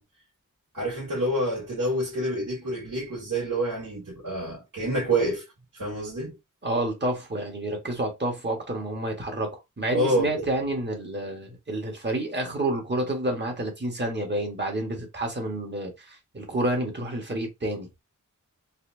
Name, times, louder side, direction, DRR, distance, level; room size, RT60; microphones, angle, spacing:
voice 1, 0.7-5.4 5.7-6.4 9.9-10.5, right 1 dB, 75° right, 2.0 m, -27 dB
voice 2, 6.6-17.9, right 1 dB, 35° right, 1.3 m, -29 dB
4.1 x 2.3 x 2.6 m
wide cardioid pair, 95°, 32 cm